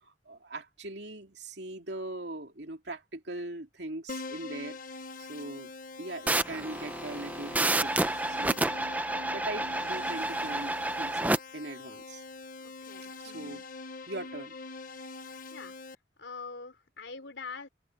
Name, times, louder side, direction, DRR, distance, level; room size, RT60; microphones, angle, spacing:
voice 1, 0.0-4.8 5.2-5.7 6.0-8.7 9.3-12.2 13.2-13.6 14.1-14.5, right 2 dB, 70° right, 2.7 m, -40 dB
Keyboard (musical), 4.1-15.9, left 3 dB, 50° left, 1.2 m, -44 dB
sound 1, 6.3-11.4, right 2 dB, 10° right, 0.7 m, -30 dB
voice 2, 12.6-13.6 15.5-15.7 16.2-17.7, left 4 dB, 90° left, 3.6 m, -44 dB
open air
head